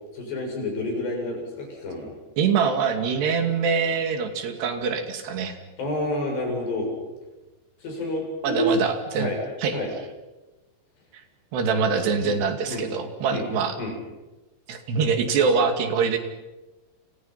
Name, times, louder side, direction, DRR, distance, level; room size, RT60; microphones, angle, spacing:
voice 1, 0.1-2.1 5.8-6.9 7.8-8.7 9.2-9.4 9.7-9.9 12.2-12.4 12.6-12.8 13.3-13.5 13.8-13.9, left 1 dB, 85° left, 1 dB, 9.5 m, -29 dB
voice 2, 2.4-5.6 8.4-9.3 9.6-9.8 11.1-11.2 11.5-13.8 14.7-16.2, right 5 dB, 80° right, 6 dB, 4.6 m, -24 dB
29.5 x 29.0 x 5.9 m, 1.1 s
omnidirectional pair, 4.8 m